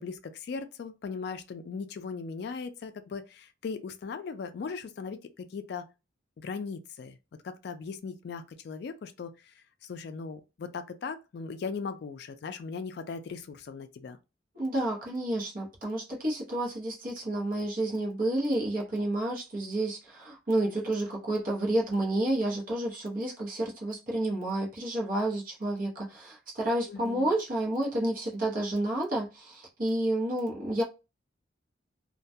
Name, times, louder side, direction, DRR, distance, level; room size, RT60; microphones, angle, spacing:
voice 1, 0.0-5.9 6.4-7.2 7.4-9.3 9.8-14.2 26.9-27.3, left 5 dB, 55° left, 0.3 m, -38 dB
voice 2, 14.5-30.8, right 1 dB, 45° right, 0.8 m, -30 dB
2.2 x 2.1 x 2.6 m
head